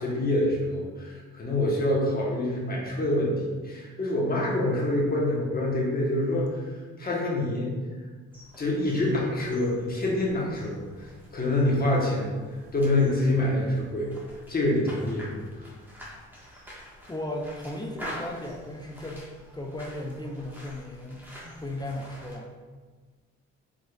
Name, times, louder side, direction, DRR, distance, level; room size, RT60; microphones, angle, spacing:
voice 1, 0.0-3.3 3.6-6.6 7.0-7.7 8.6-12.3 12.7-14.1 14.5-15.4, left 1 dB, 30° left, -3 dB, 1.2 m, -26 dB
sound 1, 8.3-22.4, equal, 5° right, 1.4 m, -46 dB
voice 2, 17.1-19.2 19.5-22.5, left 1 dB, 15° left, 0 dB, 0.4 m, -36 dB
5.0 x 3.7 x 2.4 m, 1.4 s
cardioid pair, 90°, 30 cm